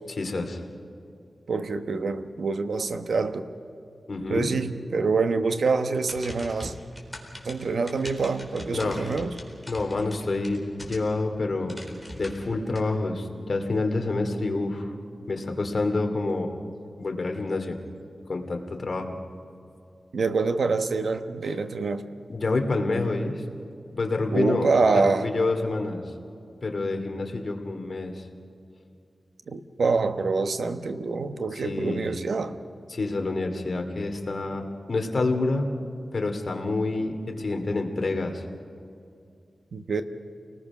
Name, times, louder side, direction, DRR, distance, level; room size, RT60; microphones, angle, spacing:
voice 1, 0.2-0.6 4.1-4.5 8.7-9.2 9.7-11.8 12.1-14.9 15.3-16.5 17.0-17.8 18.3-19.2 22.3-23.4 23.9-24.7 24.9-26.0 26.6-28.2 31.5-32.0 32.9-35.7 36.1-38.4, left 3 dB, 55° left, 3 dB, 2.6 m, -28 dB
voice 2, 1.5-3.5 4.3-6.7 7.4-9.3 20.1-22.0 24.3-25.3 29.5-32.5 39.7-40.0, right 4 dB, 80° right, 8 dB, 1.1 m, -26 dB
sound 1, 6.0-11.3 11.7-12.8, left 1 dB, 5° right, 4.1 m, -42 dB
29.5 x 19.5 x 6.1 m, 2.5 s
wide cardioid pair, 100°, 0 cm